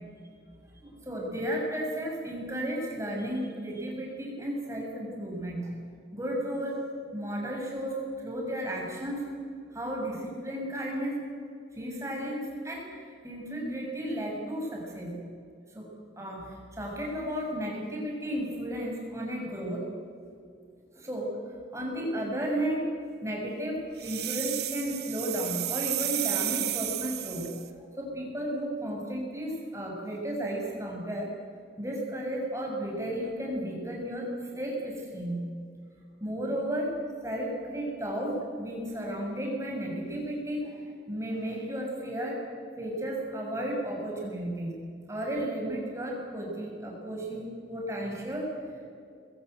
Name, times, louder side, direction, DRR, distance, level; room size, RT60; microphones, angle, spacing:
voice 1, 0.7-5.7 6.1-6.8 7.1-9.2 9.7-11.2 11.7-15.2 15.7-15.9 16.2-19.8 20.9-21.3 21.7-22.9 23.2-27.6 28.0-31.3 31.8-35.4 36.2-36.9 37.2-40.8 41.1-42.4 42.8-44.7 45.1-48.8, right 1 dB, 15° right, -1 dB, 6.8 m, -33 dB
sound 1, 24.0-27.7, right 13 dB, 60° right, 1.5 m, -32 dB
26.5 x 22.0 x 8.1 m, 2.3 s
head